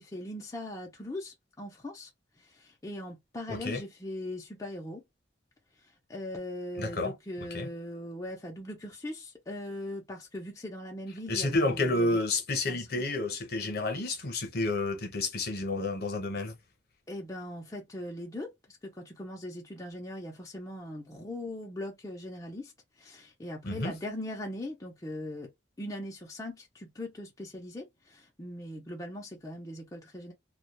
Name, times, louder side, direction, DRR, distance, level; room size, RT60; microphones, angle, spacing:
voice 1, 0.0-2.1 2.4-5.0 6.1-12.2 12.7-12.9 17.1-22.7 23.0-25.5 25.8-30.3, left 1 dB, 15° left, 0.5 m, -40 dB
voice 2, 3.5-3.8 6.8-7.1 7.5-7.7 11.3-16.5 23.6-24.0, left 2 dB, 55° left, 0.8 m, -30 dB
2.2 x 2.1 x 2.9 m
head